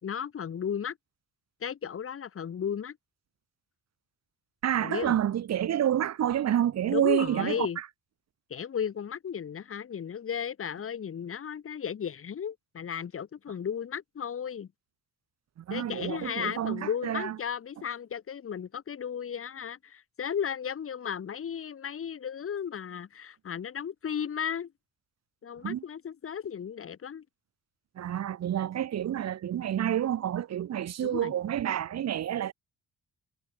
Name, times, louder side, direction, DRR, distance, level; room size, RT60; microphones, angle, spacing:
voice 1, 0.0-1.0 1.6-3.0 4.8-5.2 6.8-7.8 8.5-14.7 15.7-24.7 25.4-27.2 31.0-31.3, left 8 dB, 45° left, 2.2 m, -34 dB
voice 2, 4.6-7.7 15.6-17.4 25.6-25.8 28.0-32.5, right 10 dB, 60° right, 1.4 m, -28 dB
cardioid pair, 90°, 30 cm